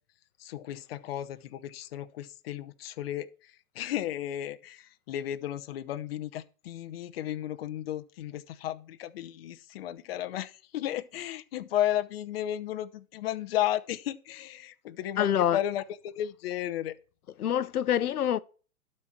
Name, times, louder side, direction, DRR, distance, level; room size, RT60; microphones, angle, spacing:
voice 1, 0.4-16.9, left 12 dB, 45° left, 0.8 m, -34 dB
voice 2, 15.2-15.6 17.4-18.4, left 10 dB, 90° left, 0.8 m, -26 dB
12.0 x 4.4 x 5.8 m
hypercardioid pair, 150°, 43 cm